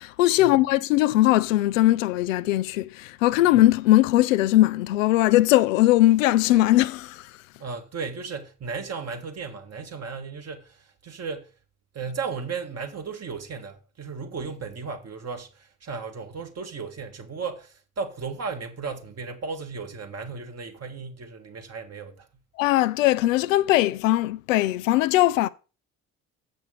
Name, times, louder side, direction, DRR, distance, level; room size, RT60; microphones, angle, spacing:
voice 1, 0.0-7.4 22.6-25.5, left 15 dB, 85° left, 0.5 m, -20 dB
voice 2, 7.6-11.5 11.9-22.3, right 5 dB, 40° right, 1.8 m, -35 dB
7.4 x 6.1 x 6.2 m
hypercardioid pair, 55°, 38 cm